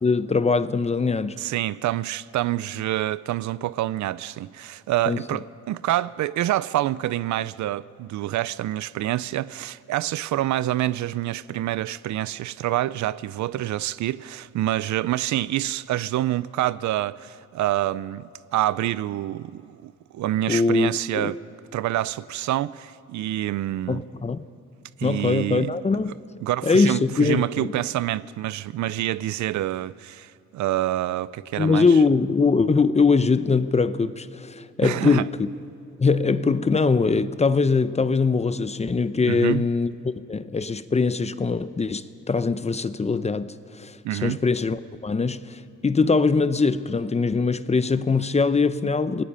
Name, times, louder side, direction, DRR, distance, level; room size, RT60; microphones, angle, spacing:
voice 1, 0.0-1.4 5.1-5.2 20.5-21.3 23.9-24.5 25.0-26.2 26.6-27.7 31.6-35.3 36.0-44.0 44.2-49.2, left 4 dB, 20° left, 0.7 m, -22 dB
voice 2, 1.4-21.4 21.7-24.0 25.0-25.7 26.4-31.9 34.8-35.2 39.3-39.7 44.0-44.4, right 14 dB, 70° right, 0.5 m, -27 dB
28.5 x 19.0 x 5.6 m
cardioid pair, 90°, 30 cm